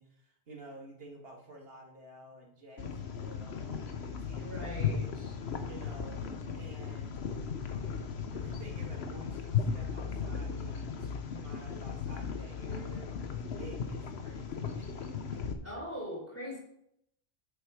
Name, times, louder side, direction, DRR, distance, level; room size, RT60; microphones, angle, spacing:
voice 1, 0.0-3.8 4.1-4.9 5.6-7.5 8.0-13.2 13.6-15.7, right 2 dB, 65° right, 0 dB, 2.1 m, -51 dB
sound 1, 2.8-15.5, left 6 dB, 80° left, 1.2 m, -36 dB
voice 2, 4.4-5.4 15.6-16.6, equal, 15° left, -4 dB, 4.3 m, -41 dB
8.3 x 7.6 x 4.9 m, 0.75 s
omnidirectional pair, 1.1 m